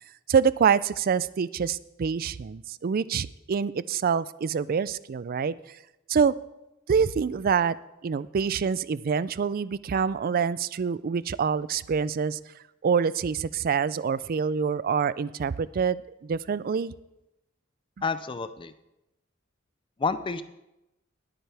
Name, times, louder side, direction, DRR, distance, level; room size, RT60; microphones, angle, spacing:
voice 1, 0.3-5.5 6.1-6.4 6.9-7.8 8.0-12.4 12.8-16.9, right 6 dB, 45° right, 18 dB, 0.4 m, -26 dB
voice 2, 18.0-18.7 20.0-20.4, left 4 dB, 25° left, 13 dB, 0.4 m, -29 dB
20.0 x 9.0 x 3.4 m, 0.93 s
head